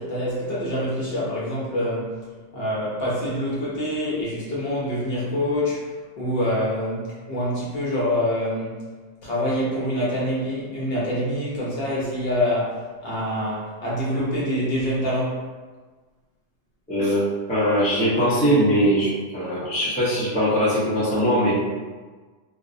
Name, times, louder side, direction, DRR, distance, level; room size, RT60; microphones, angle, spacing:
voice 1, 0.0-2.2 2.5-5.9 6.2-8.8 9.2-15.4, equal, 60° left, -7 dB, 0.8 m, -26 dB
voice 2, 16.9-21.5, equal, 10° left, -9 dB, 0.4 m, -21 dB
2.5 x 2.0 x 2.5 m, 1.4 s
omnidirectional pair, 1.3 m